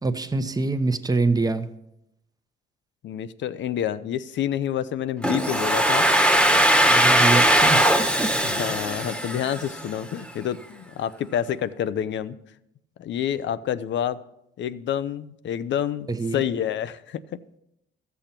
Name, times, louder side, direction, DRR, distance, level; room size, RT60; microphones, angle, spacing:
voice 1, 0.0-1.7 6.9-8.3 16.1-16.4, right 3 dB, 20° right, 0.9 m, -25 dB
voice 2, 3.0-6.0 8.4-12.4 13.0-14.2 14.6-16.1 16.3-17.2, left 10 dB, 70° left, 0.7 m, -28 dB
Domestic sounds home sounds, 5.2-10.0, right 1 dB, 5° left, 1.2 m, -20 dB
13.5 x 7.1 x 5.9 m
cardioid pair, 90°, 20 cm